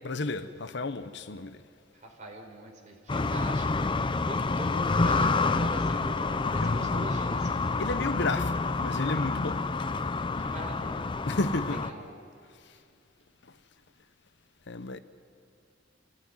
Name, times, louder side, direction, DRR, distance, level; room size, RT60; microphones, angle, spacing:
voice 1, 0.0-1.7 6.6-7.1 7.8-10.0 11.3-11.8 12.6-12.8 13.4-13.6 14.7-15.0, left 2 dB, 65° left, 0.9 m, -33 dB
voice 2, 2.2-3.8 4.2-7.8 10.4-11.2 11.9-12.1, right 2 dB, 40° right, 4.2 m, -42 dB
sound 1, 3.1-11.9, left 3 dB, 25° left, 0.5 m, -28 dB
27.5 x 16.0 x 9.6 m
head